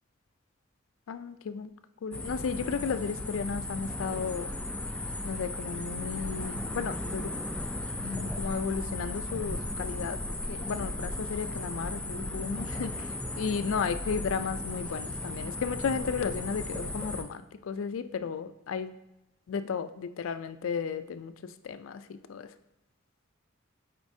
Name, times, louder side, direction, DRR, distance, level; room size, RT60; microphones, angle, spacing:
voice 1, 1.1-1.7 2.0-4.5 5.2-7.3 8.0-10.2 10.5-13.1 13.4-19.0 19.5-22.5, left 6 dB, 75° left, 12 dB, 0.4 m, -34 dB
sound 1, 2.1-17.2, left 1 dB, 5° left, 0.3 m, -36 dB
8.1 x 4.4 x 2.7 m, 0.91 s
head